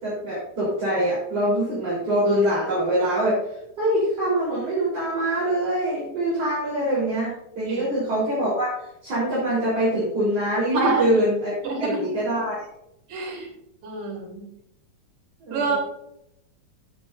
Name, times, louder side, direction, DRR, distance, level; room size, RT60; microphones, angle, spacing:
voice 1, 0.0-3.4 3.8-8.8 9.0-11.5 11.8-12.5 15.4-15.8, right 1 dB, 45° right, -9 dB, 4.8 m, -24 dB
voice 2, 10.7-11.1 11.6-12.0 13.1-13.5 13.8-14.5 15.5-15.8, right 4 dB, 75° right, -2 dB, 4.9 m, -26 dB
15.0 x 7.4 x 2.6 m, 0.80 s
omnidirectional pair, 3.9 m